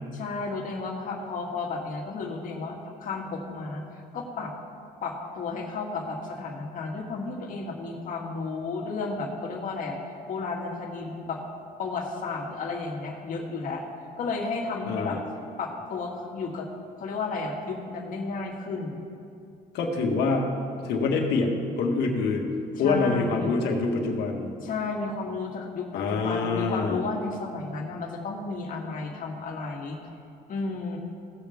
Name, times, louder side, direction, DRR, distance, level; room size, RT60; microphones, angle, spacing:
voice 1, 0.1-4.5 5.0-10.0 10.3-11.4 11.8-13.8 14.2-15.2 15.6-16.7 17.0-19.0 22.8-23.6 24.6-30.0 30.5-31.0, left 3 dB, 50° left, 0 dB, 1.8 m, -33 dB
voice 2, 14.8-15.2 19.7-20.5 20.8-22.5 22.8-24.5 25.9-27.0, left 4 dB, 75° left, 0 dB, 1.6 m, -25 dB
17.0 x 6.8 x 3.5 m, 2.6 s
cardioid pair, 110°, 17 cm